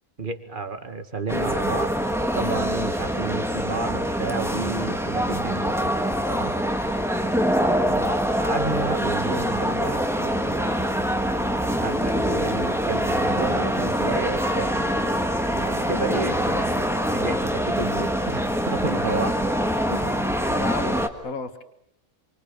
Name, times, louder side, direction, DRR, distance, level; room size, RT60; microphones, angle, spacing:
voice 1, 0.2-1.9 2.3-6.0 6.3-6.5 8.4-10.9 11.8-14.8 15.6-19.4 19.9-20.6, right 4 dB, 35° right, 8 dB, 2.3 m, -31 dB
sound 1, 1.3-21.1, equal, ahead, 1.7 m, -24 dB
voice 2, 20.5-21.6, left 4 dB, 80° left, 8 dB, 2.1 m, -33 dB
28.5 x 25.0 x 7.6 m, 0.76 s
omnidirectional pair, 1.4 m